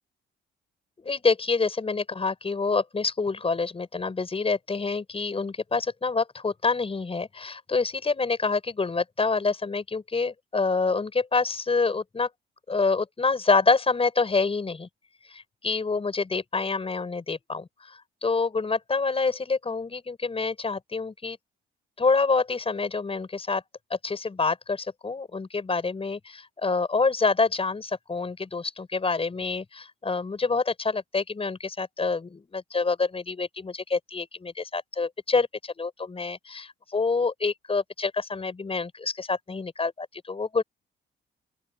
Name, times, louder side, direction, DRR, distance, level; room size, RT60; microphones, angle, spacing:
voice 1, 1.0-12.3 12.7-14.9 15.3-21.4 22.0-23.6 23.9-40.6, left 4 dB, 30° left, 6.2 m, -27 dB
open air
cardioid pair, 90°, 20 cm